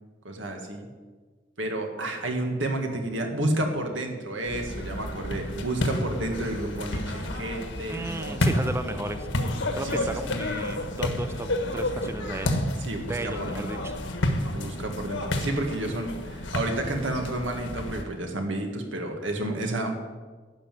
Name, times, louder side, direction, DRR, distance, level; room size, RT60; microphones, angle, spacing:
voice 1, 0.2-0.9 1.6-8.4 9.8-10.2 12.8-13.9 14.5-20.0, right 1 dB, 90° right, 3 dB, 1.8 m, -31 dB
sound 1, 4.4-18.0, left 1 dB, 80° left, 1.4 m, -30 dB
voice 2, 7.9-9.3 9.7-12.6 13.1-14.0, right 2 dB, 15° right, 9 dB, 0.5 m, -34 dB
11.5 x 5.7 x 9.0 m, 1.4 s
head